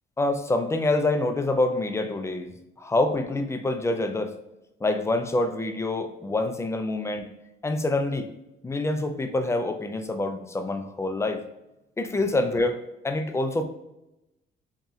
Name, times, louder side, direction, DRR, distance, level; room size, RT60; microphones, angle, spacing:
voice 1, 0.2-2.5 2.8-4.3 4.8-7.3 7.6-8.3 8.6-11.4 12.0-12.8 13.0-13.6, left 2 dB, 15° left, 7 dB, 0.4 m, -26 dB
4.0 x 2.7 x 2.4 m, 0.91 s
cardioid pair, 90°, 20 cm